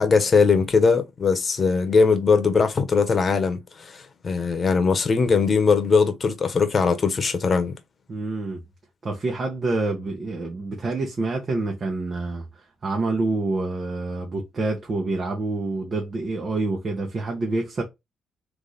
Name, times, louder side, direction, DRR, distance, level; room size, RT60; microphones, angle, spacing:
voice 1, 0.0-7.7, left 5 dB, 40° left, 1.1 m, -20 dB
voice 2, 8.1-8.6 9.0-17.8, right 3 dB, 40° right, 1.3 m, -27 dB
3.5 x 3.3 x 4.0 m
cardioid pair, 90°, 0 cm